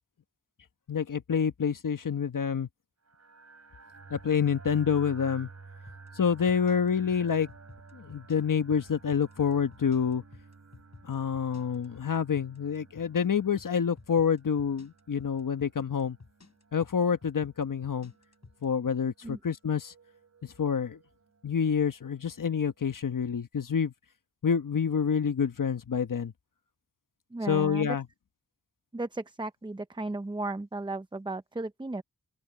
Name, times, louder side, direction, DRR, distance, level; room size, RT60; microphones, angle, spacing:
voice 1, 0.9-2.7 4.1-5.5 6.2-7.5 7.9-10.2 11.0-16.2 16.7-18.1 18.6-19.9 20.4-21.0 21.4-23.9 24.4-26.3 27.5-28.0, left 7 dB, 75° left, 1.2 m, -27 dB
sound 1, 3.0-22.7, right 4 dB, 55° right, 4.2 m, -53 dB
sound 2, 5.9-18.7, left 4 dB, 55° left, 6.3 m, -53 dB
voice 2, 27.3-28.0 28.9-32.0, right 2 dB, 15° right, 0.7 m, -35 dB
wide cardioid pair, 70°, 32 cm